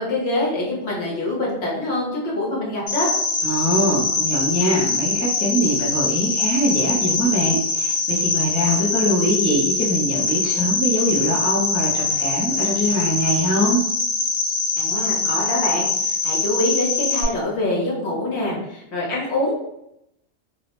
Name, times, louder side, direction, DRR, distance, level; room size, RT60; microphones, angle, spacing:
voice 1, 0.0-3.1 14.8-19.5, left 1 dB, 70° left, -3 dB, 1.2 m, -25 dB
Cricket, 2.9-17.2, left 3 dB, 85° left, 0.9 m, -23 dB
voice 2, 3.4-13.8, equal, 20° left, -6 dB, 0.5 m, -22 dB
2.7 x 2.1 x 2.9 m, 0.81 s
omnidirectional pair, 1.2 m